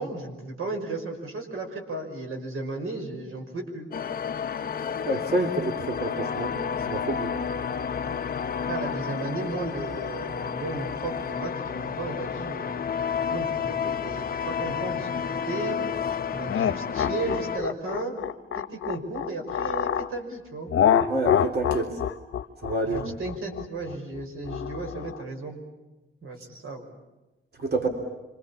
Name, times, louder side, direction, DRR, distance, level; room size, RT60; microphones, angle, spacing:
voice 1, 0.0-3.9 8.7-12.8 13.3-15.8 16.3-18.1 18.5-20.7 22.8-25.6 26.2-26.9, right 2 dB, 85° right, 4 dB, 5.7 m, -34 dB
sound 1, 3.9-17.6, left 7 dB, 45° left, 1.0 m, -31 dB
voice 2, 5.0-6.6 6.8-7.3 21.1-22.0 22.6-23.2 27.6-27.9, right 2 dB, 50° right, 3 dB, 3.4 m, -28 dB
sound 2, 16.5-20.1 20.7-25.2, left 9 dB, 85° left, 1.0 m, -26 dB
28.0 x 25.5 x 7.2 m, 1.1 s
wide cardioid pair, 135°, 21 cm